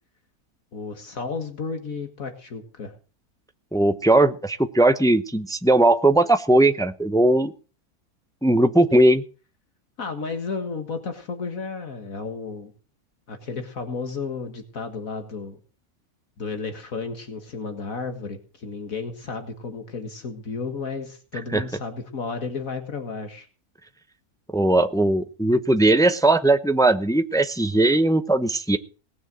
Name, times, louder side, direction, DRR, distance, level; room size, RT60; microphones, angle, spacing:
voice 1, 0.7-2.9 10.0-12.7 13.3-15.6 16.4-23.5, left 4 dB, 65° left, 6 dB, 2.1 m, -33 dB
voice 2, 3.7-7.5 8.4-9.2 21.5-21.6 24.5-28.8, right 2 dB, 5° left, 10 dB, 0.4 m, -19 dB
19.0 x 7.0 x 7.6 m, 0.37 s
omnidirectional pair, 1.6 m